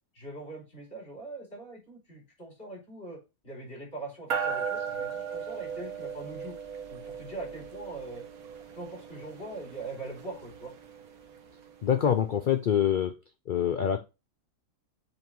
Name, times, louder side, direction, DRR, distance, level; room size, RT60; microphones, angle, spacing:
voice 1, 0.1-6.5 6.9-8.2 8.7-10.7, right 2 dB, 50° left, -4 dB, 4.6 m, -42 dB
sound 1, 4.3-12.0, right 6 dB, 80° right, 1.4 m, -37 dB
voice 2, 11.8-13.1 13.5-14.0, left 9 dB, 75° left, 6 dB, 0.4 m, -25 dB
7.9 x 2.7 x 4.5 m, 0.27 s
omnidirectional pair, 1.5 m